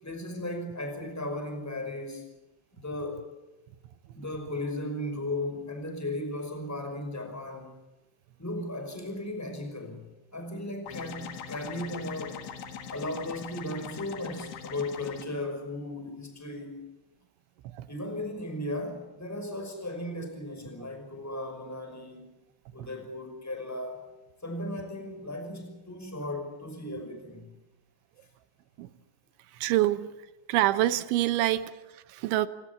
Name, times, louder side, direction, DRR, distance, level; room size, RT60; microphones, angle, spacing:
voice 1, 0.0-2.2 2.7-3.2 4.1-7.7 8.4-10.1 10.3-12.4 12.9-16.9 17.9-22.3 22.7-24.0 24.4-27.5, left 1 dB, 5° left, 5 dB, 5.0 m, -36 dB
sound 1, 10.9-15.2, left 7 dB, 75° left, 4.4 m, -41 dB
voice 2, 29.5-30.1 30.5-32.5, right 15 dB, 80° right, 12 dB, 3.4 m, -27 dB
29.5 x 18.5 x 7.2 m, 1.0 s
omnidirectional pair, 5.4 m